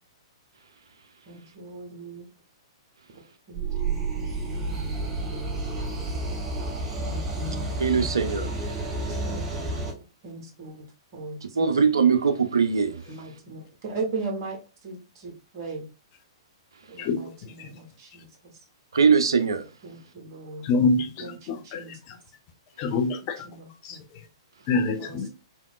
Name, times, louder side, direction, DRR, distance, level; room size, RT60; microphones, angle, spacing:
voice 1, 1.3-2.3 3.1-3.2 3.5-4.8 7.0-8.1 8.9-9.8 10.2-10.9 11.1-11.7 13.1-15.9 16.9-18.6 19.8-20.7 21.2-22.0 22.9-23.1 23.4-24.0 25.0-25.3, right 3 dB, 40° right, 1.1 m, -38 dB
sound 1, 3.5-9.9, right 2 dB, 20° right, 0.8 m, -30 dB
voice 2, 7.8-8.5 11.6-13.0 18.9-19.7, right 5 dB, 65° right, 0.5 m, -21 dB
voice 3, 20.6-21.8 22.8-23.4 23.8-24.0 24.7-25.3, left 3 dB, 30° left, 0.6 m, -25 dB
3.5 x 2.9 x 2.3 m
figure-of-eight pair, 110°, 3 cm